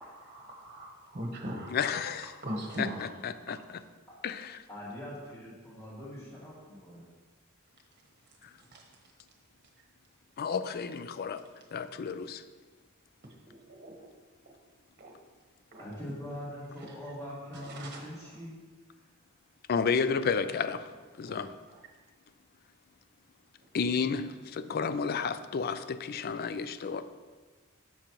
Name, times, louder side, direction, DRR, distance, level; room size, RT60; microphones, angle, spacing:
voice 1, 0.0-1.7 2.4-2.9 13.8-14.0 15.0-15.1 15.7-15.8 17.8-17.9, equal, 40° right, 1 dB, 1.1 m, -38 dB
voice 2, 1.7-2.3 2.8-3.8 4.2-4.6 10.4-11.4 11.7-12.4 19.7-20.8 21.2-21.5 23.7-27.0, left 6 dB, 50° left, 12 dB, 0.4 m, -31 dB
voice 3, 4.7-7.0 15.8-18.6, equal, 15° left, -6 dB, 2.0 m, -42 dB
9.9 x 7.0 x 3.0 m, 1.4 s
head